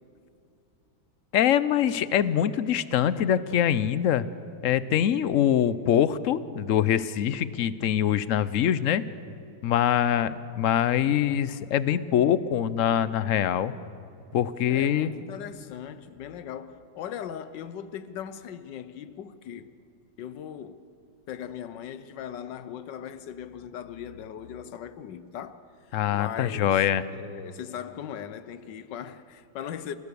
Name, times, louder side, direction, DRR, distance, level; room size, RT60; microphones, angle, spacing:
voice 1, 1.3-4.3 4.6-9.0 9.6-13.7 14.3-15.1 25.9-27.0, left 10 dB, 60° left, 0.9 m, -24 dB
voice 2, 14.7-19.7 20.2-20.8 21.3-25.7 26.1-26.8 27.1-30.0, left 9 dB, 85° left, 1.5 m, -39 dB
28.5 x 16.5 x 6.8 m
omnidirectional pair, 1.9 m